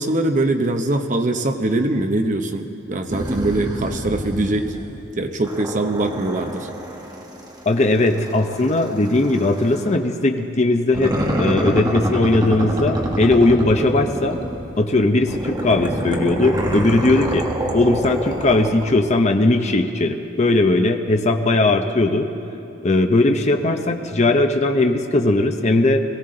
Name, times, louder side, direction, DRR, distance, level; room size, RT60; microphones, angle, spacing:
voice 1, 0.0-4.7 5.2-6.7, right 2 dB, 45° right, 6 dB, 0.9 m, -22 dB
sound 1, 3.1-5.1 5.4-10.0 10.9-14.8 15.3-19.0, equal, 20° right, 1.3 m, -27 dB
voice 2, 7.7-14.4 14.8-17.4 17.7-22.3 22.8-26.0, left 2 dB, 40° left, 5 dB, 0.8 m, -18 dB
22.0 x 15.5 x 3.9 m, 3.0 s
head